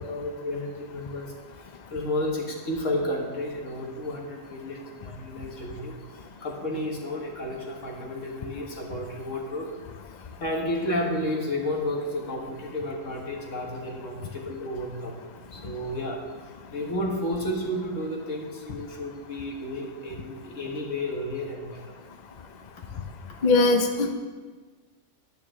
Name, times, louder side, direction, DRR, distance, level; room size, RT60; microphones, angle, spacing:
voice 1, 0.0-9.7 10.4-15.2 15.5-16.2 16.7-22.0 22.9-23.5, left 1 dB, 65° left, 0 dB, 1.9 m, -32 dB
voice 2, 23.4-24.1, left 3 dB, 45° left, 5 dB, 0.6 m, -20 dB
10.5 x 9.2 x 3.7 m, 1.4 s
omnidirectional pair, 1.4 m